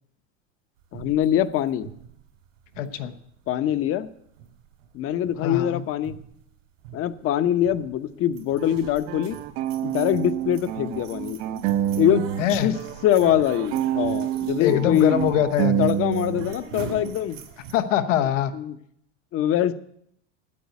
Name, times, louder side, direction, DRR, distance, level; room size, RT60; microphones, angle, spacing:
voice 1, 0.9-1.9 3.5-4.1 4.9-6.2 6.9-9.4 9.8-11.4 12.0-12.7 13.0-15.2 15.8-17.4 18.5-18.7 19.3-19.7, left 11 dB, 40° left, 14 dB, 0.8 m, -23 dB
sound 1, 0.9-3.4 3.6-4.1 4.4-5.0 5.2-5.5 5.9-6.5 6.8-7.2 7.6-8.0 8.3-17.7, right 6 dB, 80° right, 3.6 m, -43 dB
voice 2, 2.8-3.1 5.4-5.8 12.4-12.7 14.6-15.9 17.7-18.5, left 10 dB, 90° left, 9 dB, 1.1 m, -23 dB
sound 2, 8.6-12.5 12.7-16.6, right 11 dB, 60° right, 0.8 m, -28 dB
9.4 x 8.6 x 9.4 m, 0.71 s
supercardioid pair, 125°, 37 cm